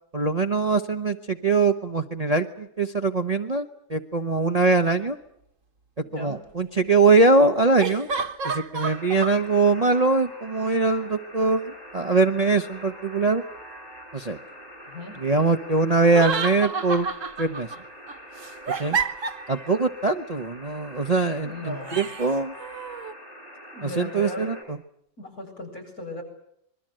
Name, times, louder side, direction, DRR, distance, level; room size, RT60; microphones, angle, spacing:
voice 1, 0.1-5.2 6.1-8.1 8.4-13.4 14.1-14.4 15.2-17.1 17.4-17.7 18.8-19.0 19.5-22.5 23.8-24.8, right 3 dB, 25° right, 6 dB, 1.1 m, -22 dB
sound 1, 4.6-4.7 7.8-9.4 16.0-17.8 18.1-19.7 21.9-23.1, right 5 dB, 50° right, 1.8 m, -30 dB
voice 2, 6.0-6.4 14.9-15.2 21.4-22.0 23.7-24.5 25.2-26.2, left 2 dB, 60° left, 1 dB, 8.3 m, -37 dB
Alarm, 8.8-24.6, equal, 30° left, 5.6 m, -44 dB
26.5 x 22.5 x 7.7 m, 0.73 s
omnidirectional pair, 1.8 m